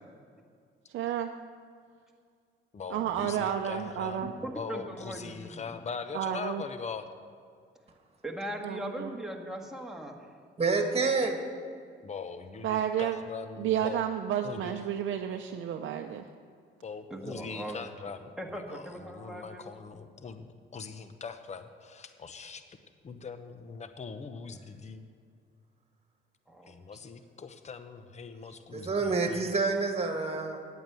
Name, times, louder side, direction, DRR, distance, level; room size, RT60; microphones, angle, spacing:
voice 1, 0.9-1.3 2.9-4.3 6.1-6.6 8.6-9.1 12.6-13.2 13.6-16.2, right 10 dB, 75° right, 4 dB, 0.6 m, -31 dB
voice 2, 2.7-7.1 12.0-14.0 14.4-14.8 16.8-22.8 23.0-25.0 26.7-29.5, left 5 dB, 35° left, 9 dB, 0.9 m, -41 dB
voice 3, 4.2-5.7 8.2-10.3 17.1-17.8 18.4-20.0 26.5-26.7, right 1 dB, ahead, 0 dB, 1.7 m, -40 dB
voice 4, 10.6-11.4 28.7-30.6, right 4 dB, 30° right, 4 dB, 1.9 m, -28 dB
9.5 x 8.7 x 7.6 m, 2.2 s
cardioid pair, 90°, 20 cm